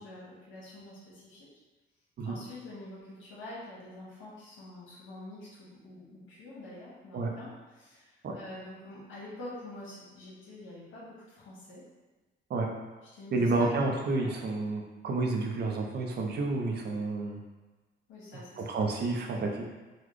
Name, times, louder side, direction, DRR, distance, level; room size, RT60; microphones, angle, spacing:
voice 1, 0.0-1.5 2.2-11.8 13.1-13.5 14.2-14.3 18.1-18.6, left 1 dB, 85° left, -7 dB, 1.3 m, -46 dB
voice 2, 13.3-17.4 18.6-19.5, right 3 dB, 55° right, 1 dB, 0.6 m, -30 dB
4.0 x 2.3 x 3.1 m, 1.2 s
cardioid pair, 90°, 20 cm